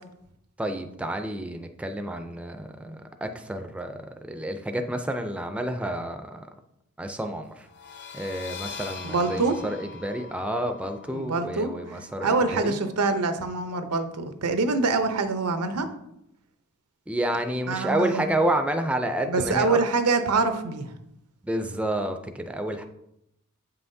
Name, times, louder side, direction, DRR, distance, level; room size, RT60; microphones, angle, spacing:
voice 1, 0.6-6.5 7.0-7.7 8.1-12.8 17.1-19.8 21.4-22.8, right 1 dB, 5° right, 6 dB, 0.4 m, -30 dB
sound 1, 7.7-13.1, left 6 dB, 50° left, 0.8 m, -43 dB
voice 2, 9.0-9.6 11.1-11.7 12.2-15.9 17.7-18.2 19.3-20.9, right 3 dB, 90° right, 8 dB, 0.7 m, -25 dB
8.0 x 5.6 x 2.7 m, 0.80 s
head